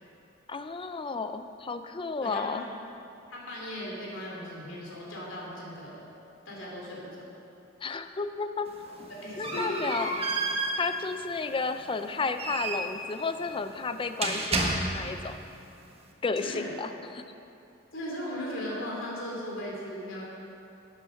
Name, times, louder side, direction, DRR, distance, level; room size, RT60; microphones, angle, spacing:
voice 1, 0.5-2.7 7.8-8.7 9.4-10.1 10.8-15.4 16.2-17.2, left 4 dB, 25° left, 9 dB, 0.5 m, -32 dB
voice 2, 2.2-2.8 3.3-6.0 6.4-7.3 9.2-9.9 16.4-16.7 17.9-20.2, left 1 dB, 75° left, -4 dB, 3.0 m, -37 dB
sound 1, 8.7-15.3, right 2 dB, 30° right, 1.3 m, -32 dB
11.0 x 8.8 x 6.4 m, 2.7 s
head